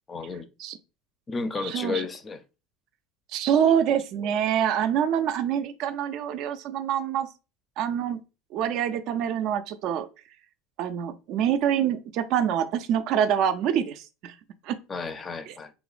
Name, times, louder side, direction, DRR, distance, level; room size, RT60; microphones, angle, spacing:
voice 1, 0.1-0.5 1.3-2.4 14.9-15.7, left 4 dB, 25° left, 0.4 m, -32 dB
voice 2, 1.5-2.1 3.3-7.3 7.8-8.2 8.5-10.1 10.8-14.3 14.6-14.8 15.5-15.6, right 9 dB, 60° right, 0.3 m, -26 dB
3.0 x 2.1 x 2.4 m
hypercardioid pair, 85°, 0 cm